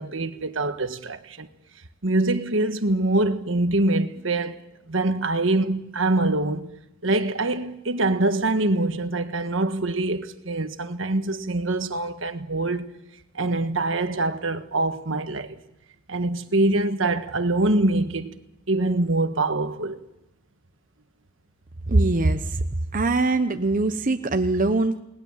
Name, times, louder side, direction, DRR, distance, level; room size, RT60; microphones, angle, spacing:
voice 1, 0.0-1.5 2.0-4.6 4.9-6.7 7.0-12.9 13.3-15.6 16.1-18.3 18.7-20.0, right 2 dB, 70° right, 1.5 m, -24 dB
voice 2, 21.9-22.6 22.9-25.0, right 2 dB, 40° right, 0.9 m, -22 dB
29.0 x 20.0 x 7.4 m
head